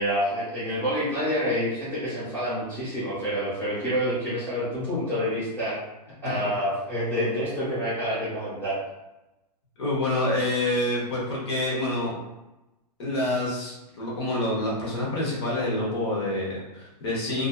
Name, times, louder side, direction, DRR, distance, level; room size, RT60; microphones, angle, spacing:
voice 1, 0.0-5.8 6.2-8.8, equal, 10° left, -15 dB, 1.0 m, -27 dB
voice 2, 9.8-12.1 13.0-17.5, left 1 dB, 40° left, -5 dB, 0.7 m, -27 dB
2.5 x 2.4 x 2.2 m, 0.98 s
hypercardioid pair, 170°, 21 cm